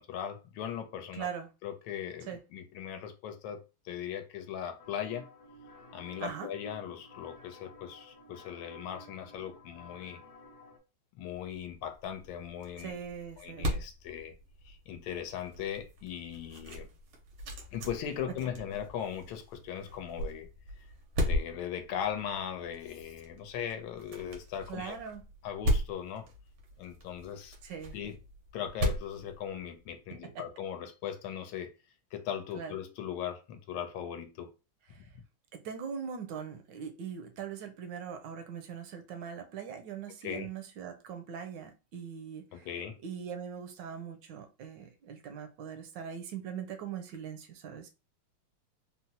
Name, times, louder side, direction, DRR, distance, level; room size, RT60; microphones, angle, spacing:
voice 1, 0.0-1.3 1.6-5.3 5.9-10.2 11.2-13.0 13.4-14.3 14.6-16.9 17.7-20.5 20.8-20.9 21.2-25.0 25.4-26.3 26.8-27.6 27.9-28.2 28.5-31.7 32.1-34.5 40.2-40.5 42.5-43.0, left 9 dB, 80° left, 1.4 m, -39 dB
voice 2, 1.1-1.5 2.3-2.4 6.2-6.5 12.8-13.7 24.7-25.2 27.6-27.9 30.3-30.4 32.5-32.7 34.9-35.1 35.5-42.7 43.0-47.9, right 7 dB, 75° right, 1.1 m, -41 dB
sound 1, 4.8-10.8, left 1 dB, 60° left, 1.2 m, -53 dB
sound 2, 11.7-30.1, equal, 90° right, 1.7 m, -38 dB
4.0 x 2.0 x 2.7 m
omnidirectional pair, 2.2 m